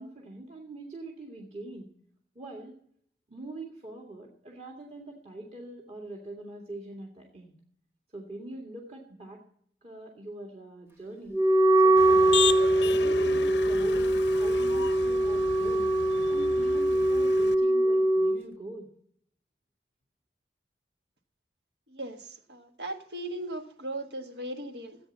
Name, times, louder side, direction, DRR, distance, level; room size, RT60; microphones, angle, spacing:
voice 1, 0.0-1.9 2.4-2.8 3.3-7.6 8.1-9.4 9.8-11.4 11.8-12.3 12.8-15.9 16.3-18.9, right 2 dB, 40° right, -1 dB, 2.1 m, -43 dB
Wind instrument woodwind instrument, 11.3-18.4, right 1 dB, 15° right, 0.9 m, -23 dB
Motor vehicle (road), 12.0-17.5, left 7 dB, 85° left, 0.7 m, -35 dB
voice 2, 21.9-25.0, right 1 dB, 75° right, 6 dB, 1.6 m, -38 dB
15.0 x 8.9 x 7.3 m, 0.65 s
head